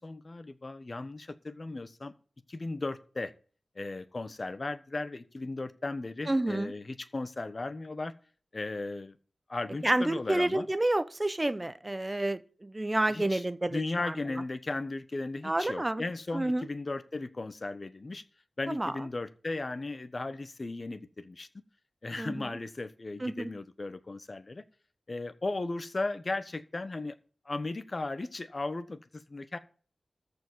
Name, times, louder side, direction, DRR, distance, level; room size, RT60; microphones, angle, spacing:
voice 1, 0.0-2.1 2.5-3.3 3.7-8.1 8.5-9.2 9.5-10.7 13.1-13.4 13.7-18.2 18.6-21.5 22.0-24.6 25.1-27.2 27.4-29.6, left 2 dB, 40° left, 1.2 m, -36 dB
voice 2, 6.3-6.7 9.8-14.1 15.4-16.0 16.3-16.6 18.7-18.9 22.2-22.4 23.2-23.5, right 1 dB, 20° right, 0.9 m, -29 dB
13.5 x 4.9 x 8.1 m
wide cardioid pair, 90°, 0 cm